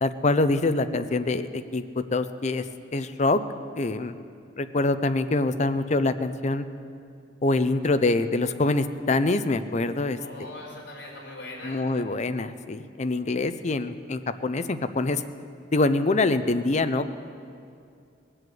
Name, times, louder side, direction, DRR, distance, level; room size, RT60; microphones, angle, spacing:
voice 1, 0.0-2.7 2.9-3.4 3.7-4.2 4.6-6.7 7.4-10.2 11.6-15.2 15.7-17.1, left 2 dB, 40° left, 10 dB, 0.6 m, -25 dB
voice 2, 10.2-11.8, left 2 dB, 65° left, -3 dB, 4.5 m, -40 dB
20.0 x 7.9 x 7.8 m, 2.4 s
head